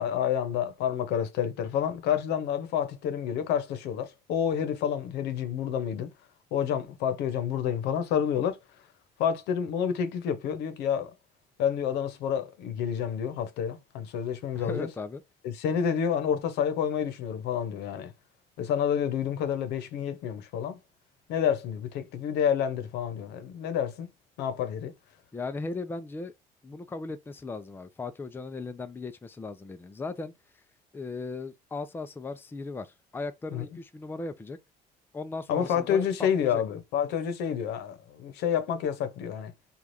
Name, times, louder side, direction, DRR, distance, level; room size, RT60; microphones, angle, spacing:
voice 1, 0.0-6.1 6.5-8.6 9.2-11.1 11.6-14.9 15.4-18.1 18.6-20.8 21.3-24.1 24.4-24.9 33.5-33.6 35.5-39.5, left 8 dB, 90° left, 0.8 m, -29 dB
voice 2, 14.5-15.2 25.3-26.3 26.6-30.3 30.9-34.6 35.1-36.6, left 3 dB, 10° left, 0.4 m, -37 dB
3.2 x 2.4 x 2.6 m
cardioid pair, 110°, 17 cm